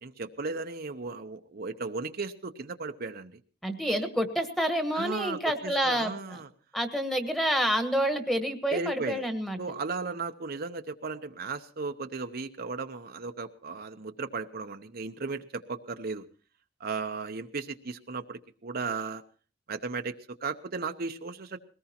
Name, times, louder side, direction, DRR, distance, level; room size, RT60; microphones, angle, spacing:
voice 1, 0.0-3.4 4.9-6.5 8.7-9.3 9.6-16.2 16.8-19.2 19.7-21.6, right 4 dB, 55° right, 6 dB, 0.8 m, -35 dB
voice 2, 3.6-6.1 6.7-9.6, equal, ahead, 6 dB, 1.4 m, -28 dB
21.0 x 18.5 x 2.9 m, 0.38 s
head